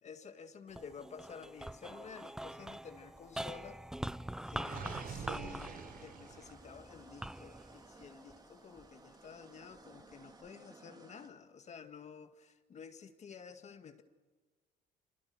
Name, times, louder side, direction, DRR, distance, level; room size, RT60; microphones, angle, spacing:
voice 1, 0.0-3.8 4.5-14.0, left 6 dB, 45° left, 7 dB, 2.0 m, -51 dB
sound 1, 0.7-9.1 9.7-10.5, right 1 dB, 5° right, 0.7 m, -45 dB
Gurgling, 4.6-6.7, right 6 dB, 60° right, 4.9 m, -46 dB
sound 2, 4.8-11.3, right 3 dB, 25° right, 3.0 m, -58 dB
29.0 x 28.0 x 6.2 m, 1.3 s
cardioid pair, 110°, 17 cm